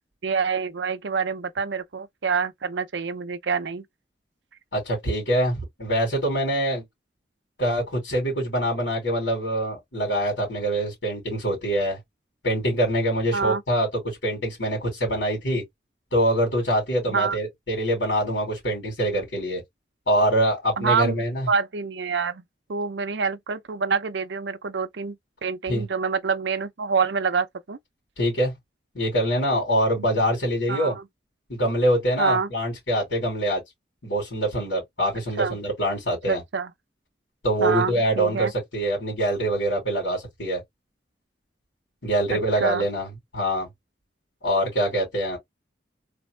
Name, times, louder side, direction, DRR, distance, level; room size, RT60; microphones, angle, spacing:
voice 1, 0.2-3.8 13.3-13.6 17.1-17.4 20.8-22.4 22.7-25.2 25.4-27.8 30.0-30.1 30.7-31.0 32.2-32.5 35.4-35.6 36.3-36.7 37.6-38.5 42.3-42.8, right 5 dB, 75° right, 0.6 m, -26 dB
voice 2, 4.7-6.8 7.6-12.0 12.4-15.6 16.1-19.6 20.1-21.5 25.7-25.8 28.2-28.6 28.9-31.0 31.5-33.6 34.0-36.4 37.4-40.6 42.0-43.1 43.3-43.7 44.4-45.4, right 1 dB, 85° left, 2.5 m, -24 dB
3.5 x 2.8 x 3.2 m
head